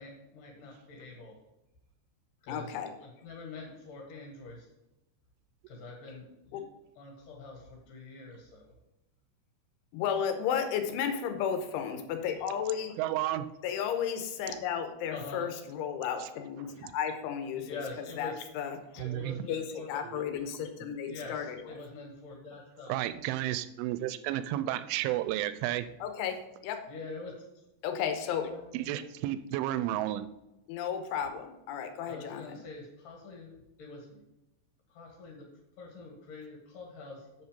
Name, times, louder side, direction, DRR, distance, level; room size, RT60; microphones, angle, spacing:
voice 1, 0.0-1.4 2.4-4.7 5.7-6.6 7.0-8.7 15.1-15.5 17.6-18.5 19.0-20.0 21.0-23.1 25.5-25.7 26.9-27.6 28.3-29.1 32.1-33.5 33.8-34.2 34.9-35.5 35.8-37.4, left 3 dB, 55° left, 0 dB, 2.6 m, -45 dB
voice 2, 2.5-2.9 6.5-6.6 9.9-13.0 13.6-17.8 18.2-18.8 19.5-21.6 26.0-26.8 27.8-28.6 30.7-32.6, left 8 dB, 85° left, 6 dB, 3.3 m, -33 dB
voice 3, 13.0-13.5 14.5-14.6 16.2-16.3 16.8-16.9 19.0-19.4 20.0-20.2 20.9-21.0 22.9-25.9 28.7-30.3, right 14 dB, 85° right, 13 dB, 3.0 m, -32 dB
8.1 x 6.9 x 5.1 m, 0.94 s
omnidirectional pair, 5.6 m